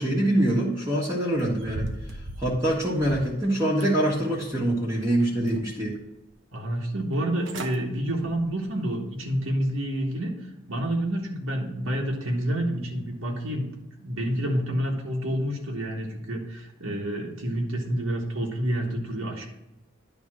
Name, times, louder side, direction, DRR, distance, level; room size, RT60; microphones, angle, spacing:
voice 1, 0.0-1.9 2.4-6.0, right 1 dB, 15° right, -5 dB, 1.2 m, -24 dB
sound 1, 1.3-3.4 3.8-4.6 5.0-5.9 6.3-6.4 7.1-7.2 7.4-7.8 8.2-8.5 9.0-9.1, right 1 dB, 70° right, 0.9 m, -38 dB
voice 2, 6.5-10.3 10.7-13.6 14.0-19.5, right 1 dB, 85° right, -1 dB, 1.5 m, -28 dB
10.5 x 3.6 x 6.1 m, 0.97 s
head